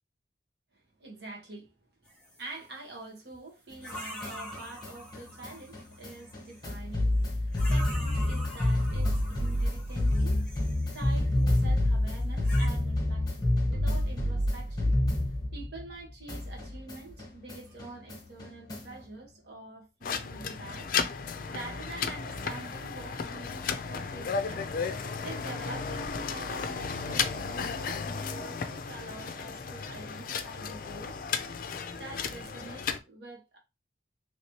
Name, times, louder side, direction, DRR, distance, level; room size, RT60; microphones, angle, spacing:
voice 1, 1.0-1.7 2.4-10.7 10.9-15.0 15.5-20.9 21.5-24.7 25.2-31.1 32.0-33.6, right 3 dB, 65° right, 1.3 m, -46 dB
sound 1, 2.0-2.6 3.8-6.7 7.5-11.4 12.2-12.7, equal, 5° left, 1.3 m, -45 dB
sound 2, 3.7-16.0 16.3-19.0, left 1 dB, 20° left, 1.0 m, -29 dB
sound 3, 20.0-33.0, left 5 dB, 50° left, 0.4 m, -34 dB
3.1 x 2.9 x 2.9 m
head